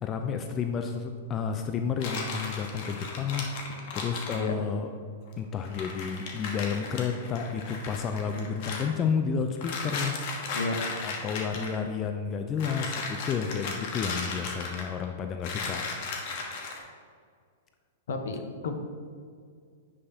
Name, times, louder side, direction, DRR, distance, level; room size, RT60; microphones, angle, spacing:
voice 1, 0.0-4.9 5.4-10.4 11.0-15.8, left 6 dB, 30° left, 5 dB, 0.4 m, -31 dB
sound 1, 2.0-4.4 5.3-5.4 5.6-8.8 9.6-11.8 12.6-15.0 15.4-16.8, left 4 dB, 55° left, 1.3 m, -36 dB
voice 2, 18.1-18.7, left 3 dB, 70° left, 5 dB, 0.9 m, -32 dB
9.5 x 5.5 x 2.8 m, 2.1 s
hypercardioid pair, 115°, 0 cm